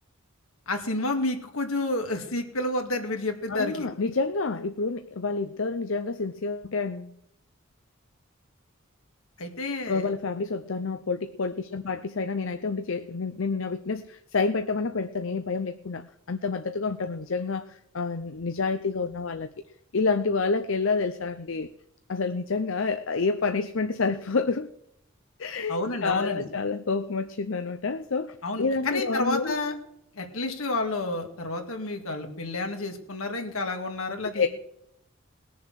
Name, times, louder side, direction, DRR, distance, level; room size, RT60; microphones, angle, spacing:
voice 1, 0.7-3.9 9.4-10.1 25.7-26.5 28.4-29.7 30.2-34.5, left 2 dB, 80° left, 4 dB, 2.3 m, -30 dB
voice 2, 3.5-7.1 9.9-17.6 17.9-19.5 19.9-21.7 22.1-24.7 25.4-29.6 34.3-34.5, left 4 dB, 65° left, 9 dB, 0.7 m, -28 dB
19.5 x 7.1 x 6.3 m, 0.78 s
head